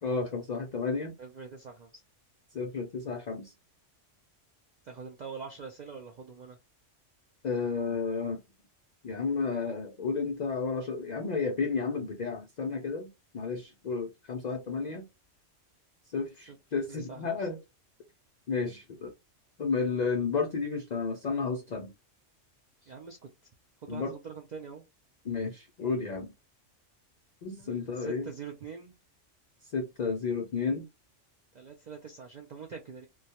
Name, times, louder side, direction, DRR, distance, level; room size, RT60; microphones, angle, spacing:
voice 1, 0.0-1.2 2.5-3.5 7.4-8.4 9.0-15.1 16.1-17.6 18.5-19.1 19.6-21.9 23.9-24.1 25.2-26.3 27.4-28.3 29.7-30.9, left 4 dB, 70° left, 0.4 m, -32 dB
voice 2, 1.2-2.0 4.8-6.6 16.9-17.5 22.9-23.3 23.8-24.8 27.6-28.9 31.5-33.1, right 6 dB, 70° right, 0.4 m, -44 dB
2.2 x 2.2 x 2.7 m
omnidirectional pair, 1.3 m